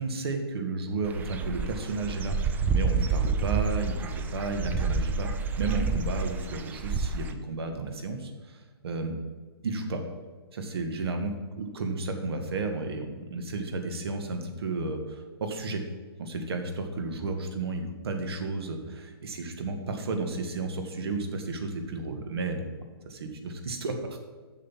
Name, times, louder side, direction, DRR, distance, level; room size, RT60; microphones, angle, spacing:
voice 1, 0.0-2.4 2.7-5.3 5.6-8.6 8.8-9.2 9.6-10.0 10.5-15.8 16.2-22.6 23.1-24.2, right 3 dB, 70° right, 5 dB, 1.8 m, -32 dB
Dog / Bird, 1.0-7.3, right 4 dB, 15° right, 0.5 m, -29 dB
7.3 x 6.6 x 7.4 m, 1.4 s
hypercardioid pair, 140°, 14 cm